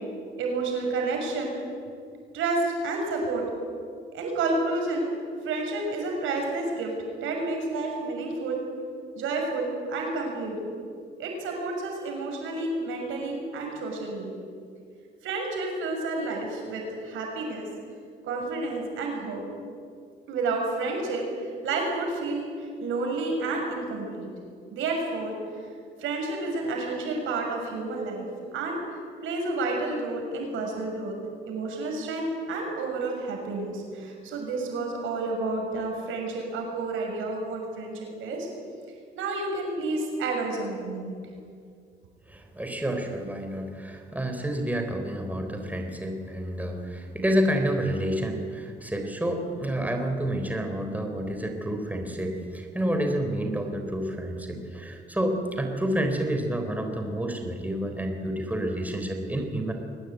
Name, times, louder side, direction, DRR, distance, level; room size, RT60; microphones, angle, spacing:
voice 1, 0.4-1.6 2.3-3.4 4.1-5.1 5.4-8.6 9.1-10.6 11.2-14.3 15.2-17.7 18.2-19.4 20.3-24.3 24.7-25.7 26.0-31.2 31.5-38.5 39.1-41.2, right 3 dB, 85° right, 1 dB, 6.6 m, -30 dB
voice 2, 42.3-59.7, right 1 dB, 10° right, 4 dB, 3.9 m, -29 dB
23.0 x 19.0 x 9.3 m, 2.3 s
cardioid pair, 90°, 20 cm